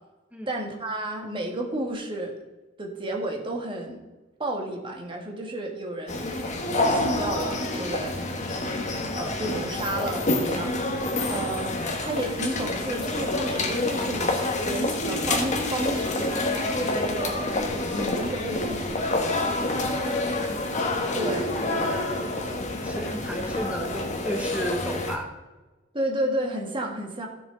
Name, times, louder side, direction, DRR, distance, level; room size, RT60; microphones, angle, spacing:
voice 1, 0.5-2.4 2.8-4.0 4.4-6.2 6.9-8.3 9.1-10.7 11.3-11.7 12.0-16.3 16.7-19.1 19.8-20.3 21.1-21.5 25.9-27.3, right 1 dB, 25° right, 1 dB, 1.9 m, -32 dB
sound 1, 6.1-25.2, left 2 dB, 40° left, 1.5 m, -27 dB
voice 2, 19.9-20.6 21.0-21.1 21.5-25.3, equal, 5° right, 2 dB, 1.6 m, -35 dB
16.0 x 6.3 x 4.0 m, 1.1 s
head